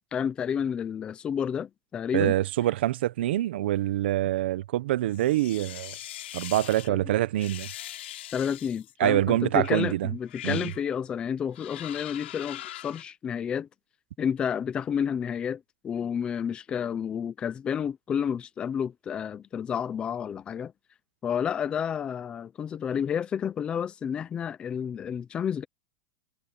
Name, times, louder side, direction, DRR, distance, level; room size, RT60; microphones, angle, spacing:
voice 1, 0.1-2.3 6.9-7.0 8.3-13.7 14.2-20.7 21.2-25.6, left 8 dB, 15° left, 0.6 m, -30 dB
voice 2, 2.1-5.9 6.3-7.7 9.0-10.1 10.4-10.6, right 14 dB, 70° right, 0.9 m, -25 dB
sound 1, 5.1-6.9 7.4-8.9 9.6-9.8 10.2-10.8 11.5-13.0, left 14 dB, 80° left, 3.5 m, -41 dB
supercardioid pair, 165°, 6 cm